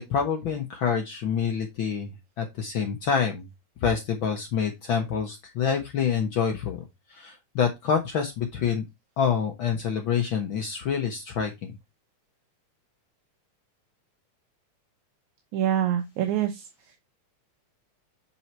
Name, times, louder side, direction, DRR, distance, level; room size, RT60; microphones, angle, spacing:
voice 1, 0.0-3.5 3.8-6.8 7.1-8.8 9.2-11.7, left 7 dB, 75° left, 4 dB, 1.1 m, -27 dB
voice 2, 15.5-16.6, right 10 dB, 75° right, 5 dB, 2.3 m, -25 dB
7.1 x 4.2 x 4.4 m, 0.21 s
omnidirectional pair, 3.5 m